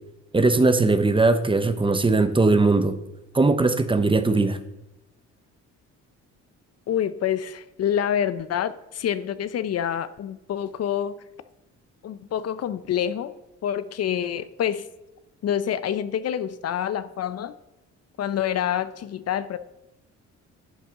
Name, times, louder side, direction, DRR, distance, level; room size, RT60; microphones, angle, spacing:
voice 1, 0.3-3.0 3.3-4.6, right 3 dB, 15° right, 10 dB, 0.8 m, -19 dB
voice 2, 6.9-11.2 12.0-13.3 13.6-14.9 15.4-17.5 18.2-19.6, left 9 dB, 55° left, 14 dB, 0.6 m, -27 dB
11.0 x 7.5 x 3.7 m, 0.94 s
cardioid pair, 90°, 30 cm